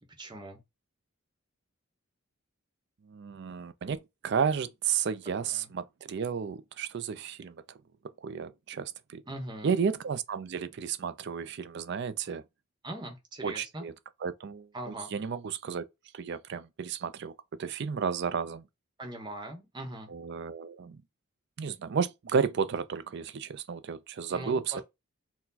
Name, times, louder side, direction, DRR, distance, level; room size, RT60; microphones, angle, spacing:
voice 1, 0.2-0.6 5.4-5.7 9.3-9.8 12.8-13.9 14.7-15.1 19.0-20.1 24.3-24.8, right 1 dB, 20° right, 1.0 m, -41 dB
voice 2, 3.1-7.6 8.2-9.2 9.6-12.4 13.4-13.9 14.2-15.8 16.1-17.3 17.6-18.6 20.1-21.0 21.6-24.8, right 6 dB, 55° right, 0.4 m, -32 dB
4.4 x 2.2 x 4.0 m
head